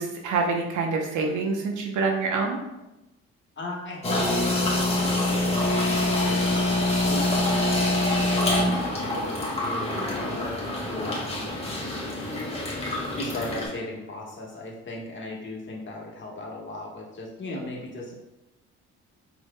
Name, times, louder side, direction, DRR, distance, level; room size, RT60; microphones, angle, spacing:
voice 1, 0.0-2.6, right 4 dB, 80° right, 2 dB, 0.9 m, -26 dB
voice 2, 3.6-6.7 7.1-11.4 13.1-18.1, left 2 dB, 40° left, -2 dB, 1.4 m, -37 dB
sound 1, 4.0-13.7, left 1 dB, 20° left, 1.6 m, -25 dB
5.0 x 4.7 x 2.2 m, 0.96 s
cardioid pair, 90°, 30 cm